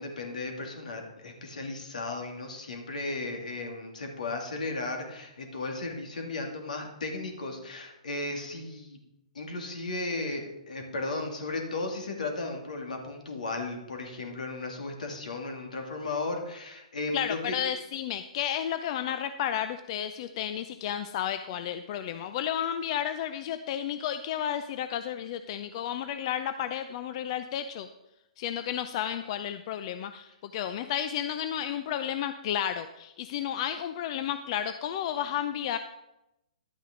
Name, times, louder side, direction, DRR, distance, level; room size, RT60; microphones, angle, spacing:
voice 1, 0.0-9.0 9.3-17.5, left 3 dB, 80° left, 2 dB, 2.6 m, -35 dB
voice 2, 17.1-27.9 28.4-35.8, left 10 dB, 45° left, 10 dB, 0.5 m, -32 dB
11.5 x 9.1 x 3.8 m, 0.89 s
hypercardioid pair, 135°, 4 cm